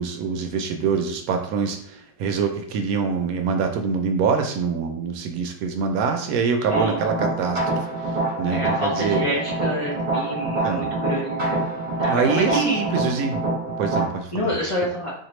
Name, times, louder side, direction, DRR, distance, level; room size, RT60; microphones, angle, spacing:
voice 1, 0.0-7.8 8.4-9.2 10.6-10.9 12.1-13.4 13.8-14.5, right 5 dB, 70° right, 5 dB, 1.0 m, -25 dB
voice 2, 6.7-7.0 8.5-11.6 12.0-12.8 14.3-15.1, equal, 60° left, -5 dB, 0.3 m, -27 dB
sound 1, 6.7-14.0, right 2 dB, 35° right, 0.8 m, -26 dB
4.2 x 2.5 x 3.1 m, 0.67 s
omnidirectional pair, 1.6 m